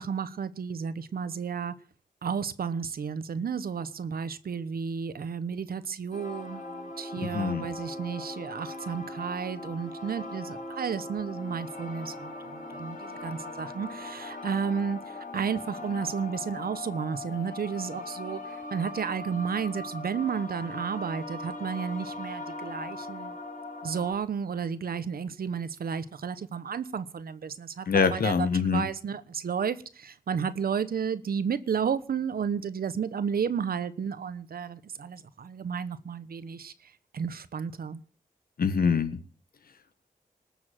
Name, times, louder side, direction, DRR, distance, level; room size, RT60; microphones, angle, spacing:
voice 1, 0.0-1.7 2.2-23.4 23.8-36.7 37.1-38.0, right 6 dB, 90° right, 1.1 m, -32 dB
sound 1, 6.1-24.1, left 2 dB, 60° left, 6.2 m, -40 dB
voice 2, 7.2-7.7 27.9-28.8 38.6-39.2, left 5 dB, 85° left, 1.6 m, -25 dB
19.5 x 7.2 x 7.7 m
cardioid pair, 60°, 15 cm